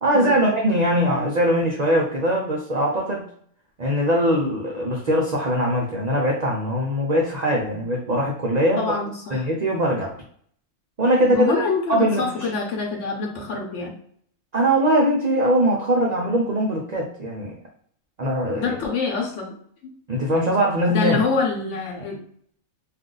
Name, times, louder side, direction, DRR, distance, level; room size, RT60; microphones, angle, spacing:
voice 1, 0.0-3.3 3.8-8.8 9.3-10.1 11.0-12.3 14.5-17.5 18.2-18.8 20.1-21.2, equal, 60° right, -2 dB, 0.4 m, -21 dB
voice 2, 8.8-9.5 11.3-13.9 18.6-19.5 20.9-22.2, left 4 dB, 65° left, 1 dB, 1.1 m, -26 dB
2.5 x 2.4 x 3.8 m, 0.62 s
omnidirectional pair, 1.4 m